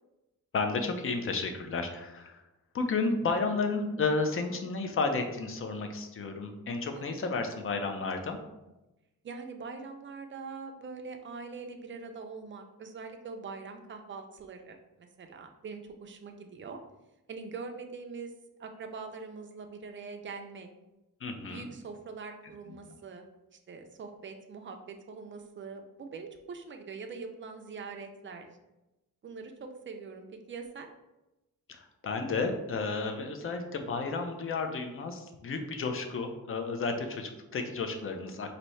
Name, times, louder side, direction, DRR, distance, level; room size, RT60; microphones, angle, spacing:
voice 1, 0.5-2.4 2.7-8.4 21.2-21.7 31.7-38.5, left 4 dB, 40° left, 5 dB, 0.4 m, -32 dB
voice 2, 6.9-7.3 9.2-16.8 17.3-18.3 18.6-20.7 21.5-23.3 23.7-28.5 29.2-30.9 36.7-36.8, right 4 dB, 35° right, 5 dB, 0.4 m, -43 dB
4.1 x 2.7 x 3.1 m, 0.97 s
wide cardioid pair, 175°, 35 cm